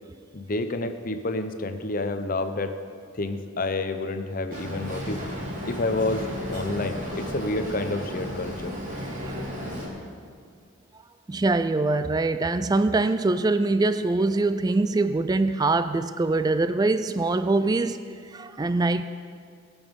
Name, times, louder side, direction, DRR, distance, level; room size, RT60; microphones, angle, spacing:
voice 1, 0.3-2.7 3.1-5.2 5.7-8.7, left 2 dB, 45° left, 8 dB, 0.7 m, -29 dB
Boat Water vehicle, 4.5-9.9, equal, 40° right, 2.4 m, -34 dB
voice 2, 11.3-19.0, right 2 dB, 20° right, 11 dB, 0.3 m, -23 dB
19.5 x 7.2 x 5.3 m, 2.2 s
head